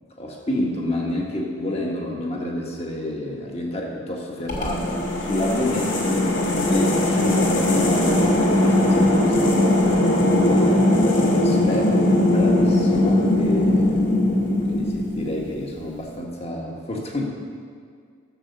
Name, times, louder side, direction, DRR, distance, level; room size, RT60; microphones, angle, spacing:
voice 1, 0.2-14.4 14.7-17.2, left 1 dB, 30° left, -1 dB, 1.6 m, -29 dB
sound 1, 4.5-15.6, left 1 dB, 60° left, 2.1 m, -19 dB
13.5 x 7.3 x 6.8 m, 2.1 s
head